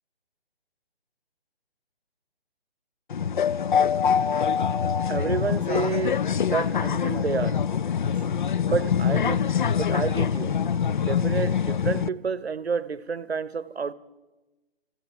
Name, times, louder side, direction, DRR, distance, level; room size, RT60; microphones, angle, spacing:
sound 1, 3.1-12.1, left 7 dB, 50° left, 0.5 m, -24 dB
voice 1, 5.1-7.6 8.6-10.6 11.0-13.9, right 5 dB, 85° right, 0.8 m, -29 dB
16.5 x 14.0 x 5.8 m
figure-of-eight pair, 145°, 31 cm